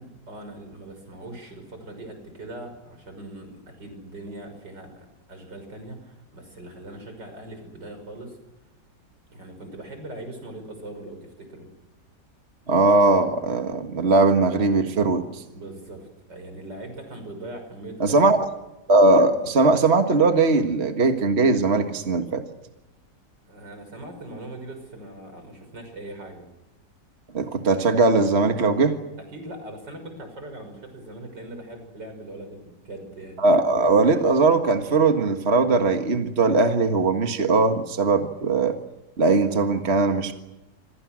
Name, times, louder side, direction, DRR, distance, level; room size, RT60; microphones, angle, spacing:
voice 1, 0.0-8.4 9.3-11.7 15.5-18.3 23.5-26.5 29.3-33.5, right 1 dB, 80° right, 6 dB, 6.7 m, -40 dB
voice 2, 12.7-15.4 18.0-18.4 18.9-22.4 27.3-29.0 33.4-38.7 39.2-40.3, right 3 dB, 40° right, 6 dB, 1.9 m, -20 dB
28.0 x 26.0 x 6.3 m, 1.0 s
omnidirectional pair, 1.9 m